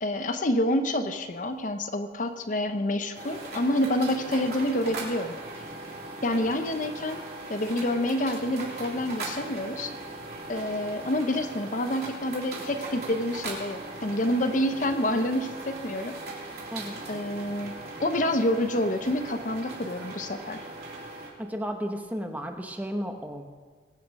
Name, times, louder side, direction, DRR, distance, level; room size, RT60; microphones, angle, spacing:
voice 1, 0.0-5.4 6.2-7.2 7.5-9.9 10.5-16.2 17.1-17.7 18.0-20.6, left 1 dB, 45° left, 7 dB, 0.8 m, -28 dB
sound 1, 3.1-21.3, right 2 dB, 60° right, 3.6 m, -39 dB
voice 2, 21.4-23.5, equal, 10° right, 4 dB, 1.0 m, -33 dB
22.0 x 8.5 x 5.3 m, 1.5 s
head